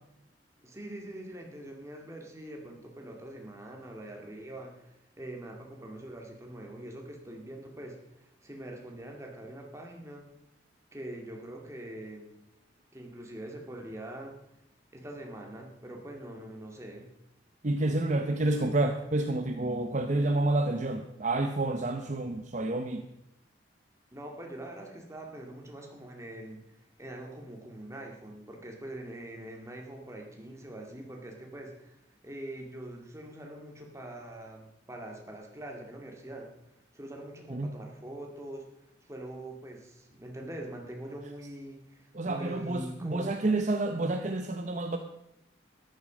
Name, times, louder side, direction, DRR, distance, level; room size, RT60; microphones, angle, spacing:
voice 1, 0.6-10.3 10.9-12.3 12.9-14.4 14.9-17.1 24.1-26.6 27.0-32.0 32.2-36.5 36.9-38.6 39.0-43.3, right 1 dB, 15° right, 1 dB, 2.3 m, -43 dB
voice 2, 17.6-23.0 37.5-37.7 42.1-45.0, right 2 dB, 45° right, 6 dB, 0.8 m, -29 dB
13.5 x 10.5 x 5.2 m, 0.83 s
head